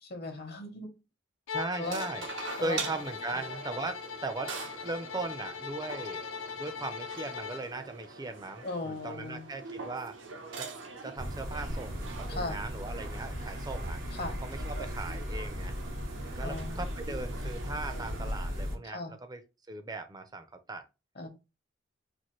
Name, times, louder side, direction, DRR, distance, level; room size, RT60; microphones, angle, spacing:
voice 1, 0.0-0.9 1.8-2.0 2.6-2.8 8.6-9.5 12.3-12.6 14.2-14.3 16.4-16.8 18.9-19.1 21.2-21.3, left 2 dB, 55° left, 0.9 m, -37 dB
Bowed string instrument, 1.5-7.7, left 6 dB, 90° left, 0.4 m, -40 dB
voice 2, 1.5-2.3 2.6-4.6 4.8-6.2 6.5-10.1 10.6-10.7 11.0-14.0 14.4-15.8 16.3-19.4 19.7-20.8, right 2 dB, 20° right, 0.5 m, -38 dB
sound 1, 1.8-18.3, right 4 dB, 75° right, 0.8 m, -44 dB
sound 2, 11.2-18.8, equal, 90° right, 2.4 m, -37 dB
4.3 x 2.6 x 3.0 m
head